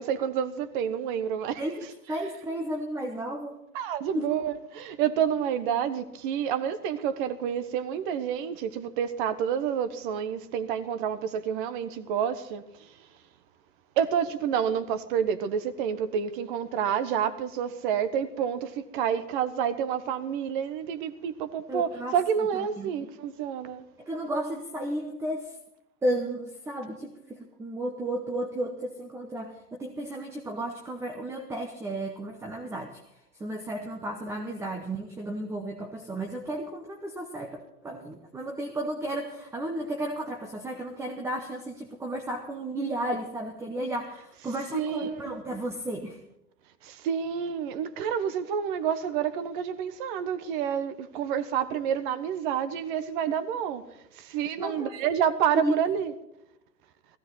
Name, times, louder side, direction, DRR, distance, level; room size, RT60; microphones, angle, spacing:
voice 1, 0.0-1.6 3.7-12.6 14.0-23.8 44.7-45.3 46.8-53.8 54.2-56.1, right 8 dB, 30° right, 1.2 m, -29 dB
voice 2, 1.6-3.6 4.1-4.3 21.7-22.2 22.5-22.9 24.0-25.6 26.0-33.0 33.4-46.2 54.6-55.0 55.6-55.7, right 1 dB, 5° right, 0.9 m, -33 dB
15.5 x 15.5 x 4.0 m
hypercardioid pair, 125°, 48 cm